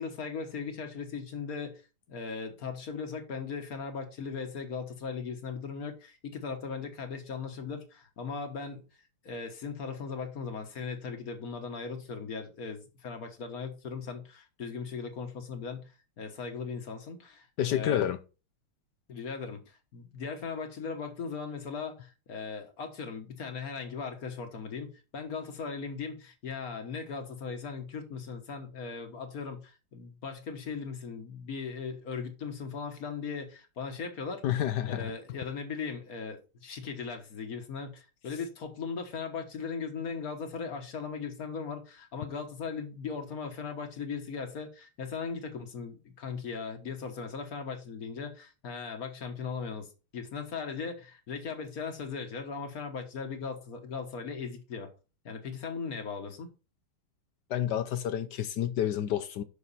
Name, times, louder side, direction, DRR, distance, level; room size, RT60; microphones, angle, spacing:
voice 1, 0.0-1.8 2.1-8.8 9.2-18.1 19.1-34.4 34.9-54.9 55.2-56.5, left 5 dB, 45° left, 1.6 m, -38 dB
voice 2, 17.6-18.2 34.4-35.1 57.5-59.4, left 11 dB, 70° left, 1.0 m, -29 dB
7.0 x 6.1 x 4.2 m
omnidirectional pair, 2.3 m